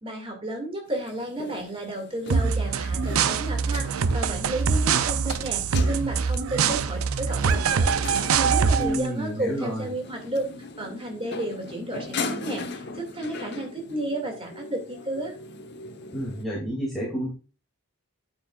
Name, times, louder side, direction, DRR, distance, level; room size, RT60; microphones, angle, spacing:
voice 1, 0.0-10.4 10.8-15.4, right 1 dB, 25° right, 2 dB, 2.3 m, -32 dB
sound 1, 0.9-16.4, left 3 dB, 50° left, 1.1 m, -39 dB
sound 2, 2.3-9.1, right 5 dB, 70° right, 0.5 m, -24 dB
voice 2, 8.7-9.9 16.1-17.3, equal, ahead, -6 dB, 2.5 m, -29 dB
9.5 x 8.4 x 2.4 m, 0.35 s
head